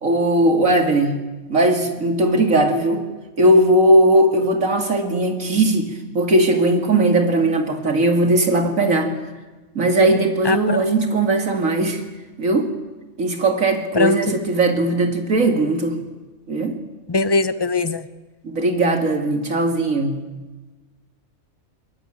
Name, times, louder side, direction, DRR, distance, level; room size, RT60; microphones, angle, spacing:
voice 1, 0.0-1.2 1.5-3.1 3.4-9.1 9.7-12.0 12.4-12.7 13.2-16.0 16.5-16.8 18.4-20.2, right 1 dB, 65° right, 5 dB, 2.7 m, -18 dB
voice 2, 10.4-10.9 13.9-14.3 17.1-18.1, left 3 dB, 20° left, 13 dB, 0.9 m, -20 dB
22.0 x 21.5 x 9.0 m, 1.2 s
omnidirectional pair, 1.5 m